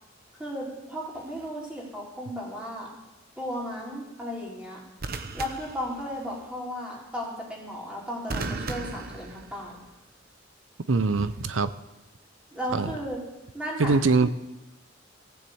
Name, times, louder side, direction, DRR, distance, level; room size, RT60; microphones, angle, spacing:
voice 1, 0.4-2.9 3.4-4.8 5.3-9.8 12.5-13.2 13.5-14.0, equal, 5° right, -5 dB, 3.8 m, -35 dB
sound 1, 1.1-1.5 5.0-6.5 8.3-10.0 11.2-11.5, right 3 dB, 50° right, 0.9 m, -37 dB
voice 2, 10.9-11.7 12.7-13.0 13.8-14.3, right 3 dB, 90° right, 13 dB, 0.7 m, -23 dB
15.5 x 7.2 x 7.9 m, 0.97 s
head